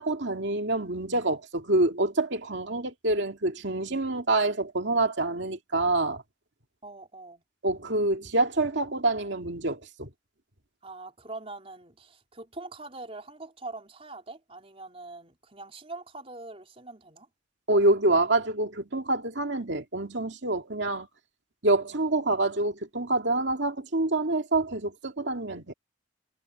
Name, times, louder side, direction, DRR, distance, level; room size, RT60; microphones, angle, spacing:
voice 1, 0.0-6.2 7.6-10.1 17.7-21.1 21.6-25.7, right 2 dB, 65° right, 2.4 m, -26 dB
voice 2, 6.8-7.4 10.8-17.3, right 2 dB, 30° right, 4.3 m, -43 dB
head